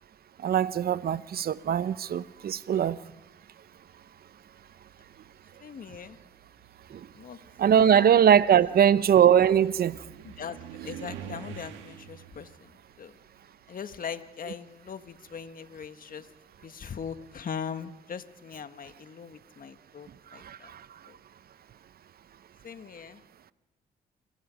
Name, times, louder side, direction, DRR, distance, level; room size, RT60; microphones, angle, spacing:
voice 1, 0.4-3.0 6.9-7.0 7.6-10.0 20.4-20.8, right 9 dB, 55° right, 0.9 m, -21 dB
sound 1, 2.4-3.0 4.0-4.1 4.6-14.6 14.8-17.5, right 8 dB, 90° right, 1.9 m, -48 dB
voice 2, 5.6-6.2 7.1-7.4 7.8-8.1 10.2-12.5 13.0-13.1 13.7-16.3 16.6-20.7 21.1-21.2 22.6-23.2, left 7 dB, 50° left, 1.5 m, -40 dB
28.0 x 25.5 x 5.2 m
supercardioid pair, 60°, 18 cm